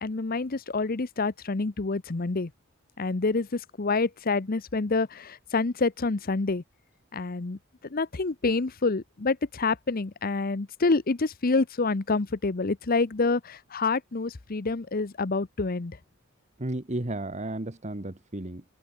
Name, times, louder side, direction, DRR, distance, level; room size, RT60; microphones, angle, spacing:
voice 1, 0.0-2.5 3.0-6.6 7.1-7.6 7.9-16.0, left 3 dB, 45° left, 0.8 m, -27 dB
voice 2, 16.6-18.6, right 1 dB, 35° right, 1.5 m, -33 dB
head